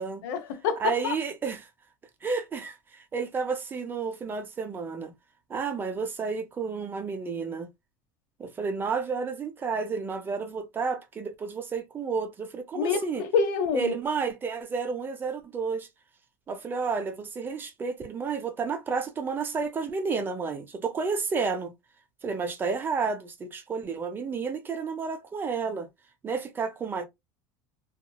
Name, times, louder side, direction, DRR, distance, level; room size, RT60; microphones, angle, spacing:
voice 1, 0.2-1.1 12.7-13.9, left 5 dB, 85° left, 0.7 m, -27 dB
voice 2, 0.8-1.6 2.2-5.1 5.5-7.7 8.4-13.2 13.7-15.9 16.5-21.7 22.2-25.9 26.2-27.1, right 5 dB, 20° right, 0.5 m, -31 dB
2.9 x 2.4 x 2.2 m
cardioid pair, 145°, 10 cm